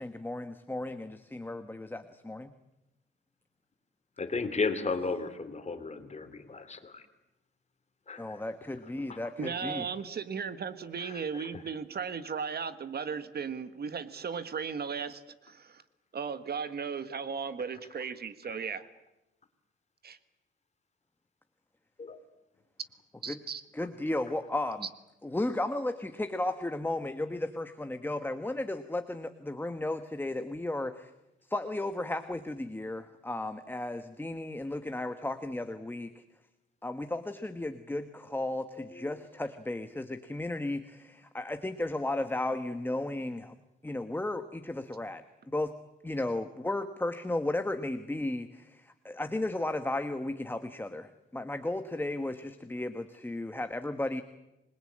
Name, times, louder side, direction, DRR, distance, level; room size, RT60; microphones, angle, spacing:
voice 1, 0.0-2.5 8.2-9.9 23.3-23.4 23.7-24.9 25.2-31.1 31.5-36.2 36.8-43.5 43.8-45.7 46.0-54.2, left 2 dB, 10° left, 8 dB, 1.2 m, -34 dB
voice 2, 4.2-7.0 8.1-8.4 9.1-9.5 10.9-11.4 18.5-18.6 22.0-22.2 38.7-39.1, left 4 dB, 35° left, 9 dB, 2.8 m, -35 dB
voice 3, 9.4-15.8 16.1-18.8 20.0-20.2 23.2-23.6, right 6 dB, 55° right, 12 dB, 1.5 m, -36 dB
27.0 x 21.0 x 8.7 m, 0.94 s
wide cardioid pair, 135°, 20 cm